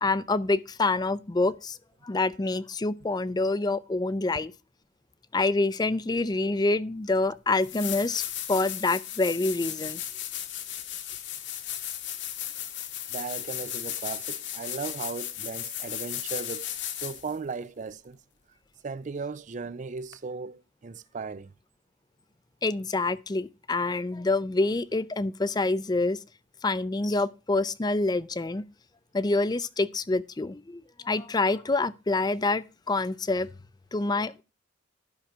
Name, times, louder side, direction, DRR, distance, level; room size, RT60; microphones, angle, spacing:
voice 1, 0.0-1.8 2.0-4.5 5.3-8.2 8.5-10.0 22.6-26.2 26.6-28.6 29.1-33.5 33.9-34.4, left 3 dB, 20° left, 0.4 m, -26 dB
sound 1, 7.1-7.2 7.6-17.3 20.1-20.2, left 11 dB, 60° left, 1.4 m, -35 dB
voice 2, 13.1-16.7 17.0-18.2 18.8-21.5, right 4 dB, 40° right, 0.4 m, -36 dB
12.0 x 5.7 x 6.0 m
head